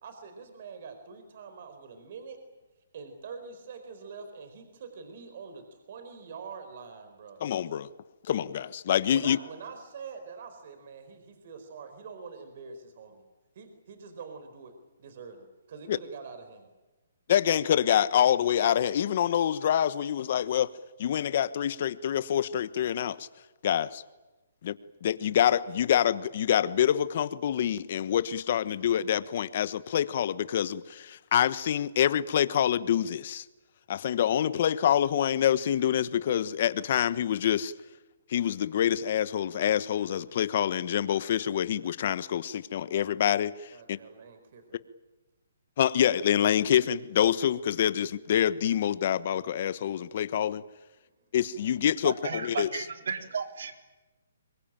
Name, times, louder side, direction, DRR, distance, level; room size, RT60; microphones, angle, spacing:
voice 1, 0.0-2.4 2.9-7.4 9.1-13.2 13.5-14.7 15.0-16.7 43.7-44.8, right 5 dB, 50° right, 8 dB, 4.4 m, -45 dB
voice 2, 7.4-7.9 8.3-9.4 15.9-16.0 17.3-20.7 21.0-23.3 23.6-24.0 24.6-24.8 25.0-33.4 33.9-37.7 38.3-44.0 45.8-50.6 51.3-52.7, left 10 dB, 50° left, 15 dB, 1.2 m, -26 dB
voice 3, 52.0-53.7, right 6 dB, 70° right, 5 dB, 4.0 m, -34 dB
25.5 x 23.0 x 9.1 m, 1.1 s
hypercardioid pair, 155°, 0 cm